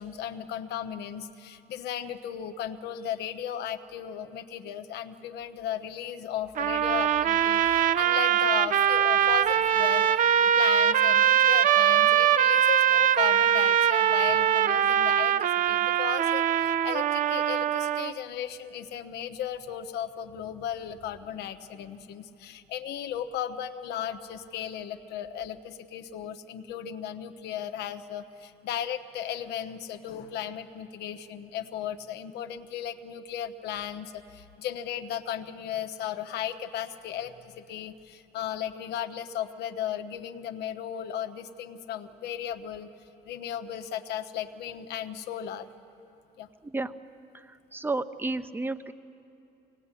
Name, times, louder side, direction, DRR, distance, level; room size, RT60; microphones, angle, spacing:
voice 1, 0.0-42.9 43.2-45.7 46.4-46.5, left 9 dB, 80° left, 8 dB, 1.1 m, -36 dB
sound 1, 6.6-18.1, right 10 dB, 50° right, 0.6 m, -22 dB
voice 2, 47.7-48.9, right 2 dB, 10° right, 11 dB, 0.8 m, -31 dB
24.0 x 18.0 x 9.8 m, 2.8 s
cardioid pair, 110°, 17 cm